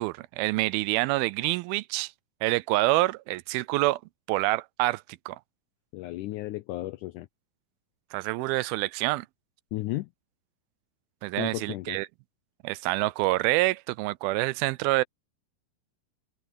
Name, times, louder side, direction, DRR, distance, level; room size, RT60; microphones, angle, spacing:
voice 1, 0.0-2.1 2.4-4.0 4.3-5.4 8.1-9.3 11.2-12.1 12.6-15.0, right 20 dB, 85° right, 2.4 m, -27 dB
voice 2, 5.9-7.3 9.7-10.1 11.4-12.0, left 17 dB, 85° left, 1.7 m, -34 dB
open air
omnidirectional pair, 4.3 m